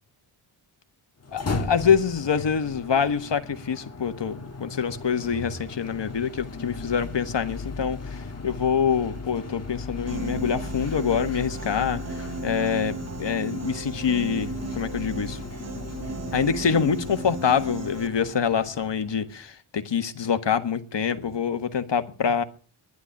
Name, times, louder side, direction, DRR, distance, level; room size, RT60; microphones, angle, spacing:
sound 1, 1.2-19.4, left 3 dB, 30° left, 1.8 m, -37 dB
voice 1, 1.3-14.5 14.8-15.4 16.3-22.4, left 7 dB, 60° left, 1.6 m, -25 dB
Piano, 10.1-18.1, right 4 dB, 30° right, 0.8 m, -35 dB
11.5 x 11.5 x 10.0 m
cardioid pair, 70°, 50 cm